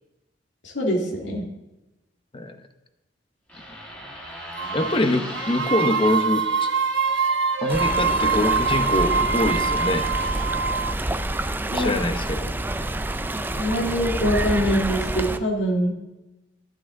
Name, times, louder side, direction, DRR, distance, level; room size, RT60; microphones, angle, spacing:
voice 1, 0.6-1.4 11.7-11.9 13.5-15.9, equal, 85° left, 0 dB, 2.1 m, -24 dB
sound 1, 3.5-10.6, equal, 10° left, 2.5 m, -38 dB
sound 2, 4.6-5.0 5.3-10.9, right 5 dB, 75° right, 0.5 m, -24 dB
voice 2, 4.7-6.7 7.6-10.1 11.7-12.5, left 1 dB, 30° left, 8 dB, 0.9 m, -24 dB
Stream, 7.7-15.4, right 1 dB, 10° right, 0.4 m, -28 dB
12.0 x 11.0 x 3.8 m, 1.0 s
head